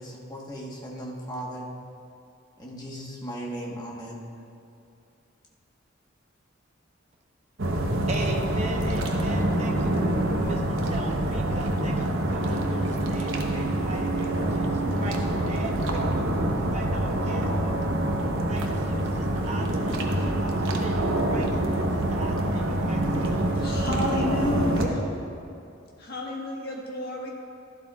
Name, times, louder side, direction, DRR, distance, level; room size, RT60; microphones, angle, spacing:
voice 1, 0.0-1.7 2.6-4.3, right 1 dB, 20° left, -3 dB, 1.3 m, -37 dB
sound 1, 7.6-24.9, right 1 dB, 65° right, 0.9 m, -26 dB
voice 2, 8.1-10.0 10.4-16.0 16.6-17.7 18.4-21.6 21.9-23.7, right 2 dB, 35° right, 1 dB, 0.9 m, -39 dB
voice 3, 23.6-25.0 26.0-27.3, left 1 dB, 50° left, -2 dB, 1.6 m, -30 dB
13.0 x 12.0 x 2.4 m, 2.5 s
head